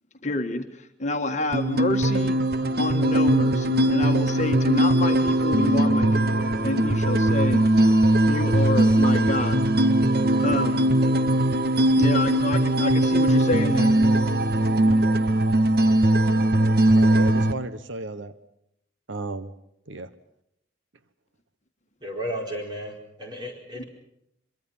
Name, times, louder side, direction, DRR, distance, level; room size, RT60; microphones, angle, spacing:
voice 1, 0.2-0.6 1.0-2.4 2.8-7.6 8.2-9.6 10.4-10.8 12.0-13.9 23.8-23.9, left 2 dB, 35° left, 5 dB, 1.6 m, -28 dB
sound 1, 1.5-17.5, right 1 dB, 50° right, 1.0 m, -20 dB
voice 2, 17.0-18.3 19.1-19.5 19.9-20.1, right 2 dB, 80° right, 12 dB, 1.1 m, -33 dB
voice 3, 22.0-23.8, equal, 20° right, 1 dB, 4.7 m, -33 dB
25.0 x 23.0 x 5.6 m, 0.77 s
head